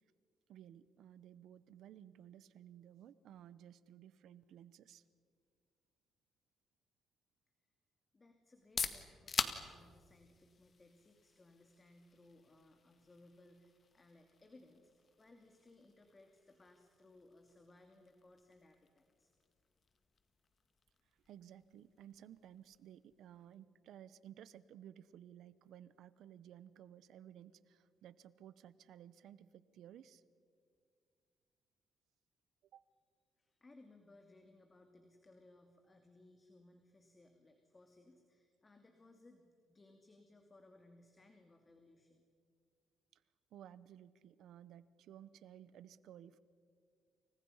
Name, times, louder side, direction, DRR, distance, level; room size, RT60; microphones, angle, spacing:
voice 1, 0.5-5.0 21.3-30.2 32.7-32.8 43.5-46.4, right 10 dB, 75° right, 16 dB, 0.9 m, -56 dB
voice 2, 8.1-14.9 15.2-19.3 33.4-42.2, left 2 dB, 25° left, 4 dB, 2.5 m, -63 dB
sound 1, 8.5-24.1, left 5 dB, 40° left, 1.9 m, -48 dB
29.5 x 29.0 x 5.7 m, 2.2 s
cardioid pair, 90°, 0 cm